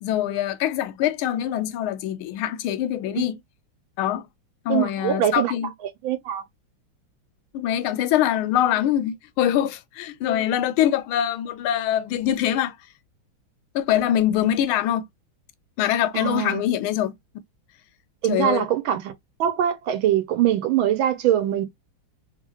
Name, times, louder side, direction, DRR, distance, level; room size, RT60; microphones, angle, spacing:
voice 1, 0.0-3.4 4.0-4.3 4.6-5.7 7.5-12.7 13.7-15.1 15.8-17.2 18.3-18.7, left 11 dB, 90° left, 1.4 m, -23 dB
voice 2, 4.7-5.5 6.0-6.4 16.1-16.6 18.2-19.1 19.4-21.6, right 11 dB, 80° right, 1.5 m, -23 dB
3.6 x 2.4 x 2.9 m
omnidirectional pair, 2.2 m